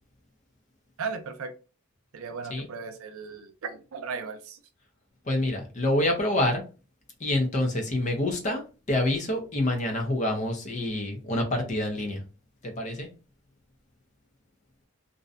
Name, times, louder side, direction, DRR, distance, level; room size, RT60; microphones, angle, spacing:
voice 1, 1.0-1.5 2.1-4.6, right 5 dB, 80° right, 0.5 m, -36 dB
voice 2, 5.2-6.6 7.2-8.6 8.9-12.2 12.6-13.1, left 1 dB, 35° left, 0.6 m, -27 dB
2.6 x 2.1 x 2.4 m
head